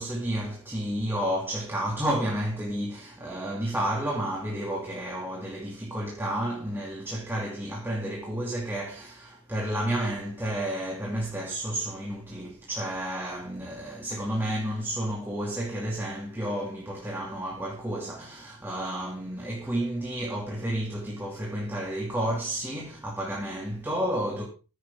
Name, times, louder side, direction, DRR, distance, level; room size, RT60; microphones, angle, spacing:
voice 1, 0.0-24.4, right 1 dB, 10° right, 2.5 m, -31 dB
15.5 x 10.0 x 3.6 m
head